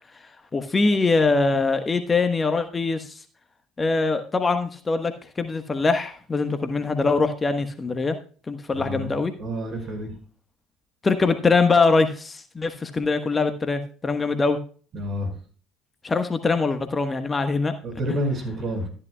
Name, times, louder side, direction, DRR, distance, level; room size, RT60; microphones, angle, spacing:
voice 1, 0.5-3.2 3.8-8.2 8.5-9.3 11.0-14.6 16.0-17.7, left 3 dB, 25° left, 8 dB, 1.3 m, -23 dB
voice 2, 8.7-9.1 9.4-10.2 14.9-15.3 17.8-18.9, equal, 45° right, 4 dB, 5.4 m, -29 dB
13.5 x 11.0 x 2.3 m, 0.40 s
hypercardioid pair, 60°, 0 cm